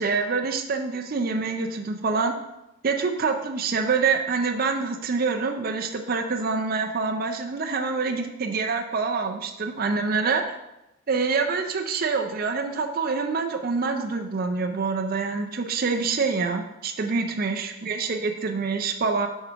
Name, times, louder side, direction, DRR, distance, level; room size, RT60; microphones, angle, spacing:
voice 1, 0.0-2.3 2.8-10.4 11.1-19.3, right 4 dB, 40° right, 4 dB, 0.4 m, -26 dB
6.5 x 3.6 x 4.5 m, 0.92 s
head